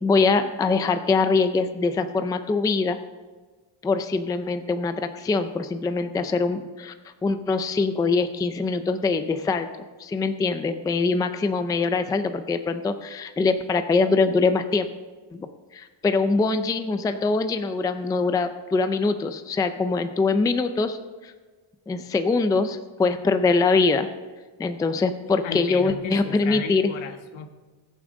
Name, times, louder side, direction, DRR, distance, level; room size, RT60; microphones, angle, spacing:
voice 1, 0.0-3.0 3.8-6.9 7.2-9.7 10.0-14.9 15.3-15.5 15.7-21.0 21.2-21.3 21.9-24.1 24.6-26.9, left 4 dB, 10° left, 9 dB, 0.3 m, -23 dB
voice 2, 25.4-27.5, left 6 dB, 80° left, 7 dB, 1.4 m, -35 dB
21.0 x 7.1 x 3.8 m, 1.4 s
cardioid pair, 150°, 47 cm